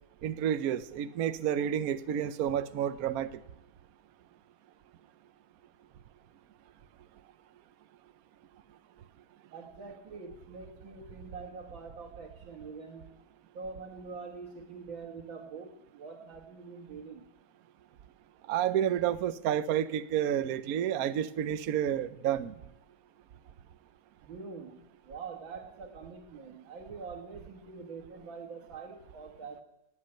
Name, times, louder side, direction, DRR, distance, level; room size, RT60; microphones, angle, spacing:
voice 1, 0.2-3.3 18.5-22.5, right 10 dB, 65° right, 12 dB, 1.0 m, -30 dB
voice 2, 9.5-13.1 13.5-17.2 24.2-29.6, right 4 dB, 85° right, -3 dB, 2.4 m, -45 dB
19.5 x 8.5 x 8.7 m, 0.98 s
omnidirectional pair, 2.1 m